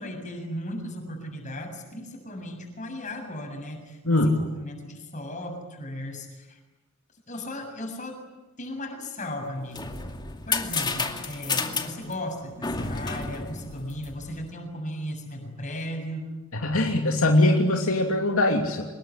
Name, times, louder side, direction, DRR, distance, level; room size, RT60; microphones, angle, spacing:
voice 1, 0.0-6.6 7.3-8.2 8.6-9.9 10.5-16.4, left 1 dB, 35° left, 3 dB, 7.3 m, -36 dB
sound 1, 9.4-14.5, left 4 dB, 20° left, 2.4 m, -31 dB
voice 2, 16.6-18.8, left 1 dB, 75° left, 2 dB, 2.9 m, -21 dB
25.5 x 21.5 x 10.0 m, 1.1 s
head